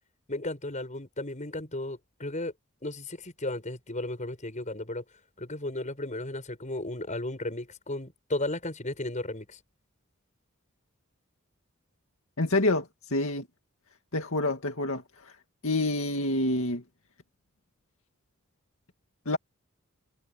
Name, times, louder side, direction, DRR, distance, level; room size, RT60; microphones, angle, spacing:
voice 1, 0.3-2.5 2.8-5.0 5.4-9.6, left 2 dB, 35° left, 6.6 m, -34 dB
voice 2, 12.4-13.5 14.1-15.3 15.6-16.8 19.3-19.4, left 2 dB, 70° left, 2.2 m, -27 dB
head